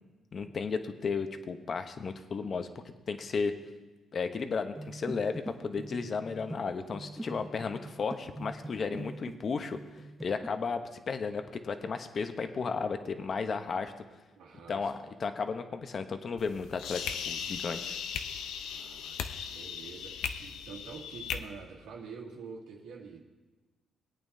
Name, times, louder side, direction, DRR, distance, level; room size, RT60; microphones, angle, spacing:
voice 1, 0.3-2.7 3.1-3.5 4.1-9.8 10.2-10.8 11.1-13.9 14.7-17.0 17.3-18.0, left 5 dB, 45° left, 8 dB, 0.9 m, -34 dB
sound 1, 4.7-9.4 9.7-10.5, right 1 dB, 10° right, 0.8 m, -43 dB
voice 2, 14.4-15.1 18.7-23.2, right 5 dB, 90° right, -2 dB, 2.4 m, -47 dB
sound 2, 16.4-21.4, left 7 dB, 90° left, 0.7 m, -37 dB
20.5 x 8.8 x 2.8 m, 1.2 s
cardioid pair, 90°, 0 cm